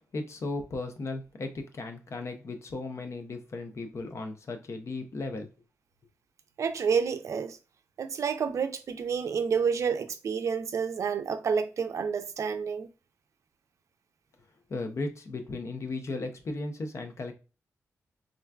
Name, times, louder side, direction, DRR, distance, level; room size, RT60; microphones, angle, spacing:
voice 1, 0.1-5.5 14.7-17.3, left 2 dB, 55° left, 0.6 m, -36 dB
voice 2, 6.6-7.6 8.0-12.9, right 6 dB, 65° right, 0.4 m, -29 dB
3.7 x 2.3 x 2.2 m
cardioid pair, 75°, 6 cm